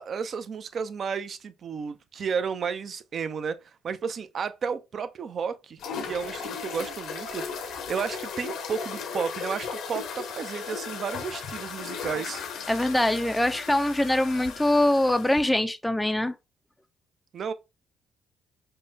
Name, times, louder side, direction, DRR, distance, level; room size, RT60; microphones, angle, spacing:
voice 1, 0.0-5.8 6.1-12.4 17.3-17.5, right 6 dB, 55° right, 0.5 m, -32 dB
sound 1, 5.8-15.4, left 6 dB, 75° left, 0.6 m, -36 dB
voice 2, 12.7-16.3, left 1 dB, 10° left, 0.3 m, -23 dB
5.3 x 2.1 x 2.6 m
supercardioid pair, 60°, 0 cm